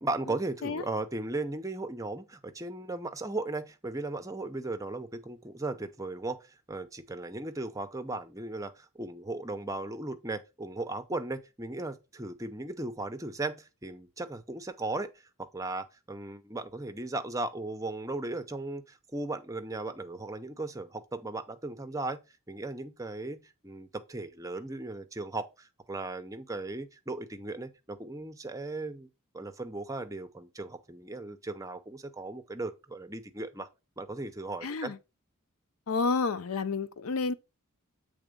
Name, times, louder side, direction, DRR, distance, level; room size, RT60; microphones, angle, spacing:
voice 1, 0.0-6.4 6.7-15.1 15.5-22.2 22.5-29.1 29.3-33.7 34.0-34.9, right 2 dB, 15° right, 0.6 m, -37 dB
voice 2, 34.6-35.0 35.9-37.3, left 4 dB, 80° left, 0.6 m, -30 dB
8.0 x 3.5 x 5.1 m
head